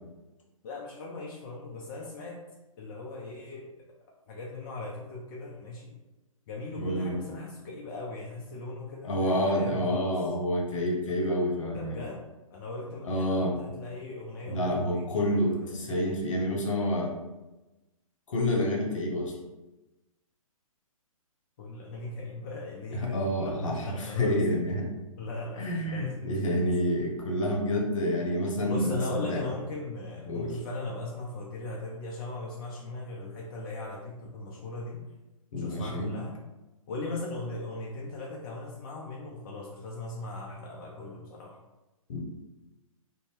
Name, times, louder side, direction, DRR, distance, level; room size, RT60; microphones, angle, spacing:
voice 1, 0.6-2.4 2.8-3.7 4.3-5.9 6.5-10.1 11.7-12.3 12.5-15.7 21.6-24.4 25.2-26.6 28.7-35.0 35.6-36.3 36.9-41.6, left 2 dB, 35° left, -2 dB, 0.4 m, -38 dB
voice 2, 6.8-7.2 9.0-12.0 13.0-13.6 14.5-17.1 18.3-19.3 22.9-24.9 25.6-29.4 30.3-30.5 35.5-36.1 42.1-42.2, equal, 60° left, 0 dB, 0.8 m, -28 dB
2.6 x 2.0 x 3.3 m, 1.0 s
figure-of-eight pair, 130°, 18 cm